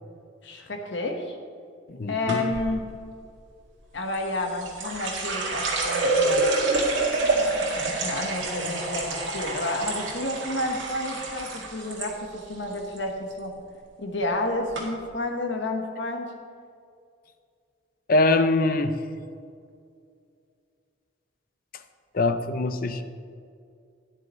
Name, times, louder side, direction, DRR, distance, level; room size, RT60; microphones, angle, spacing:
voice 1, 0.4-1.4 2.1-2.9 3.9-6.5 7.8-13.6 14.0-16.3, left 2 dB, 70° left, 3 dB, 1.4 m, -30 dB
voice 2, 1.9-2.5 18.1-19.0 22.1-23.0, left 2 dB, 50° left, 9 dB, 0.6 m, -23 dB
sound 1, 2.3-2.7 4.1-12.1 12.4-13.0 13.3-13.6 14.3-14.4 14.7-14.8, right 3 dB, 75° right, 2.2 m, -27 dB
12.5 x 10.5 x 3.1 m, 2.3 s
head